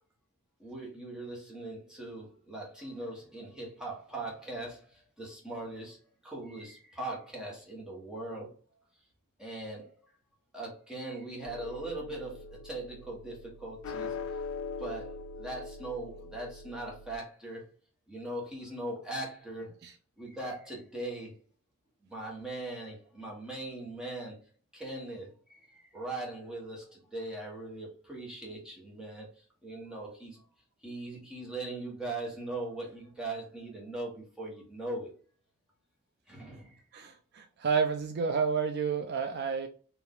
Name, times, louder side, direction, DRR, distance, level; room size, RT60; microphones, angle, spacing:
voice 1, 0.6-8.5 9.4-9.9 10.5-14.2 14.8-17.6 18.1-19.7 20.2-21.3 22.0-24.4 24.7-30.4 30.8-35.1 36.3-36.8, right 2 dB, 5° right, 1.3 m, -40 dB
sound 1, 11.5-17.2, left 4 dB, 65° left, 0.3 m, -42 dB
voice 2, 36.9-39.7, right 5 dB, 50° right, 0.4 m, -30 dB
4.3 x 2.6 x 3.7 m
head